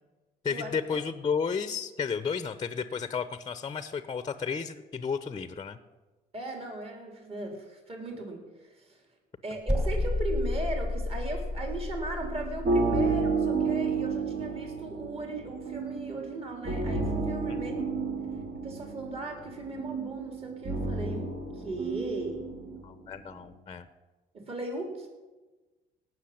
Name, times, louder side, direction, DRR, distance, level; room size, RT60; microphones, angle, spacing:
voice 1, 0.4-5.8 22.8-23.9, left 6 dB, 25° left, 12 dB, 0.8 m, -32 dB
voice 2, 6.3-9.0 9.4-17.9 18.6-22.4 24.3-25.1, right 2 dB, 35° right, 2 dB, 3.6 m, -37 dB
sound 1, 9.7-12.8, left 2 dB, 5° right, 1.6 m, -31 dB
sound 2, 12.2-23.4, right 3 dB, 60° right, 3.1 m, -31 dB
17.5 x 6.3 x 8.7 m, 1.2 s
cardioid pair, 110°, 17 cm